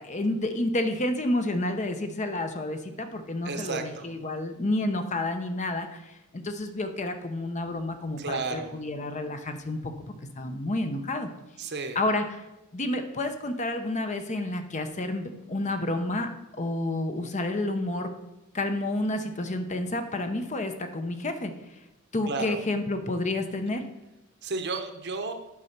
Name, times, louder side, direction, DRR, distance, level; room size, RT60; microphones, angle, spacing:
voice 1, 0.0-9.9 10.4-11.3 11.9-12.4 12.7-16.3 16.6-18.1 18.5-21.5 22.1-23.8, left 2 dB, 35° left, 7 dB, 0.8 m, -30 dB
voice 2, 3.4-4.1 8.2-8.7 11.6-12.0 22.3-22.6 24.4-25.3, right 4 dB, 50° right, 7 dB, 1.0 m, -32 dB
9.6 x 5.4 x 5.9 m, 0.98 s
head